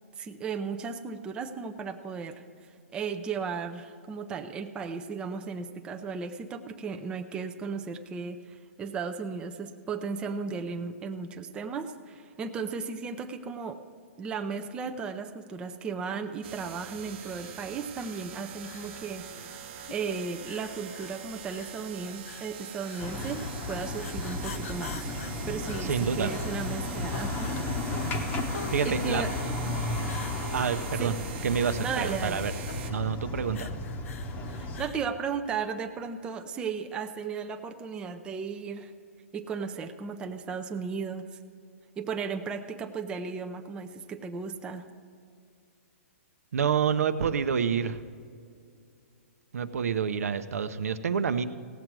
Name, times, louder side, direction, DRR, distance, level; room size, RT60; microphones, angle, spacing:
voice 1, 0.2-2.4 2.9-13.8 14.2-19.5 19.9-25.1 25.5-27.6 28.8-29.4 31.0-31.1 31.8-32.5 34.5-38.9 39.3-41.4 42.0-44.9, right 5 dB, 10° right, 6 dB, 0.5 m, -35 dB
sound 1, 16.4-32.9, right 9 dB, 45° right, 0.9 m, -43 dB
sound 2, 17.2-35.1, left 7 dB, 65° left, 0.6 m, -46 dB
sound 3, 23.0-34.9, left 2 dB, 20° left, 0.9 m, -34 dB
voice 2, 25.8-26.3 28.7-29.2 30.5-31.2 31.4-32.5 32.9-33.8 46.5-48.0 49.5-51.5, right 7 dB, 80° right, 11 dB, 0.8 m, -28 dB
17.0 x 7.7 x 4.6 m, 2.3 s
hypercardioid pair, 155°, 8 cm